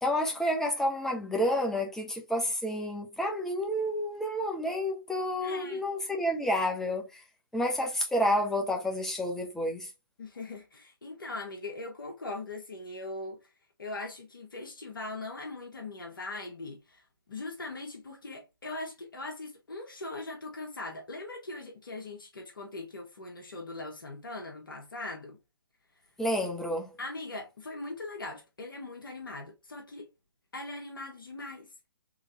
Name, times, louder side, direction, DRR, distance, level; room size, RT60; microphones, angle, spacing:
voice 1, 0.0-7.2 7.5-9.9 26.2-27.0, equal, 5° left, 0.8 m, -30 dB
voice 2, 5.4-5.8 10.2-13.4 13.8-25.4 27.0-30.1 30.5-31.9, left 2 dB, 65° left, 1.2 m, -40 dB
3.8 x 3.2 x 2.8 m
figure-of-eight pair, 130°, 12 cm